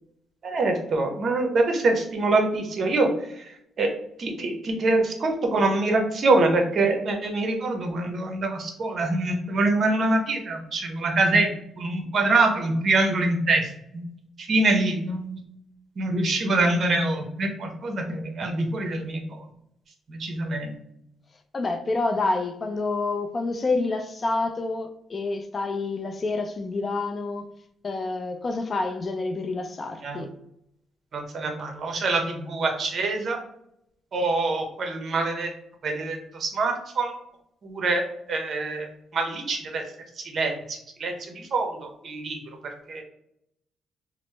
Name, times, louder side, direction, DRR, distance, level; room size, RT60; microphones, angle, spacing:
voice 1, 0.4-3.1 3.8-3.9 4.2-11.5 11.8-13.7 13.9-14.1 14.4-15.4 16.0-19.4 20.1-20.7 30.0-30.2 31.1-33.4 34.1-35.5 35.8-37.2 37.6-38.9 39.1-39.8 40.3-42.4 42.6-43.0, right 2 dB, 50° right, 0.7 m, -25 dB
voice 2, 21.5-27.5 27.8-30.3, left 3 dB, 35° left, 0.4 m, -28 dB
2.9 x 2.0 x 3.2 m
cardioid pair, 90°, 0 cm